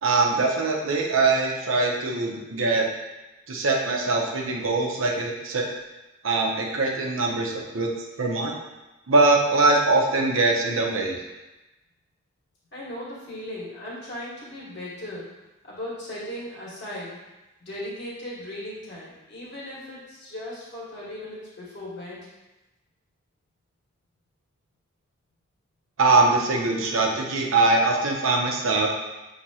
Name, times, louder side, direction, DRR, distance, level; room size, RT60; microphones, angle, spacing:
voice 1, 0.0-2.9 3.5-5.6 6.2-7.9 8.2-8.6 9.1-11.2 26.0-28.9, right 3 dB, 85° right, 0 dB, 0.7 m, -22 dB
voice 2, 12.7-15.3 15.6-17.2 17.6-22.3, left 1 dB, 55° left, -6 dB, 1.4 m, -37 dB
6.0 x 2.9 x 2.8 m, 1.0 s
head